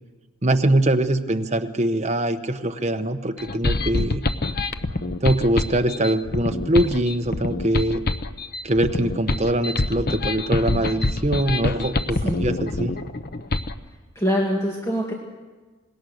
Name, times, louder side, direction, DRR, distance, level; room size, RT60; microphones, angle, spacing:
voice 1, 0.4-4.2 5.2-8.0 8.6-12.9, right 1 dB, 30° right, 6 dB, 1.1 m, -22 dB
sound 1, 3.4-13.7, left 2 dB, 45° left, 0.8 m, -25 dB
voice 2, 14.2-15.1, equal, 15° left, -1 dB, 2.1 m, -23 dB
26.5 x 20.5 x 6.6 m, 1.3 s
head